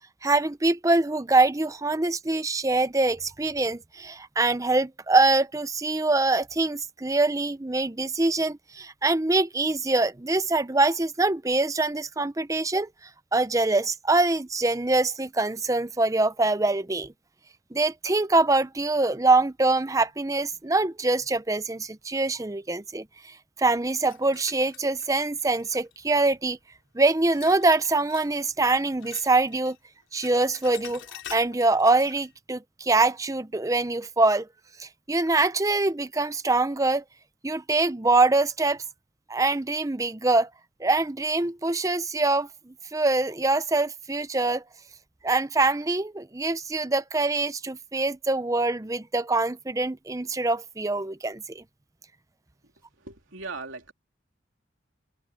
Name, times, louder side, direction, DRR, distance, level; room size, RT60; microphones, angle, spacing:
voice 1, 0.2-12.9 13.3-17.1 17.7-26.6 26.9-29.8 30.1-31.0 31.3-34.5 34.8-37.0 37.4-38.8 39.3-40.5 40.8-44.6 45.2-51.6, right 2 dB, 15° right, 0.6 m, -24 dB
sound 1, 24.0-26.1 27.3-28.4 28.6-29.8 30.0-32.3, left 10 dB, 80° left, 3.6 m, -46 dB
voice 2, 52.6-53.9, right 3 dB, 85° right, 3.2 m, -40 dB
head